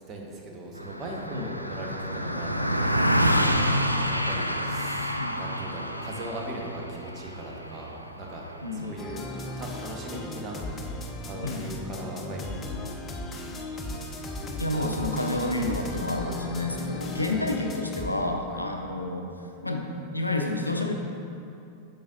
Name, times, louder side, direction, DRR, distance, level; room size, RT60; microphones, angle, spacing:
voice 1, 0.1-9.2 9.6-12.9 17.3-17.5 18.5-18.7, right 1 dB, 30° right, 0 dB, 1.1 m, -39 dB
Car passing by, 0.8-10.4, equal, 90° right, 0.3 m, -28 dB
voice 2, 8.6-9.0 11.4-11.8 14.6-19.3 19.6-20.9, left 2 dB, 85° left, 3 dB, 0.5 m, -29 dB
sound 1, 9.0-18.1, left 2 dB, 20° left, 0.7 m, -36 dB
8.5 x 6.9 x 2.6 m, 2.6 s
figure-of-eight pair, 90°, 0 cm